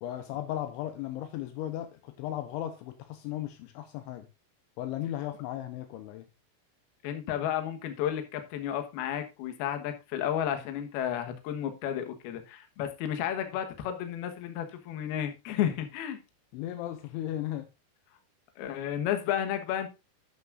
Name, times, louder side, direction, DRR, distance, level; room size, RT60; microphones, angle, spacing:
voice 1, 0.0-4.3 4.8-6.3 16.5-17.7, left 12 dB, 80° left, 3.0 m, -36 dB
voice 2, 7.0-16.2 18.6-19.9, left 10 dB, 65° left, 2.7 m, -32 dB
11.0 x 9.5 x 2.5 m
omnidirectional pair, 5.7 m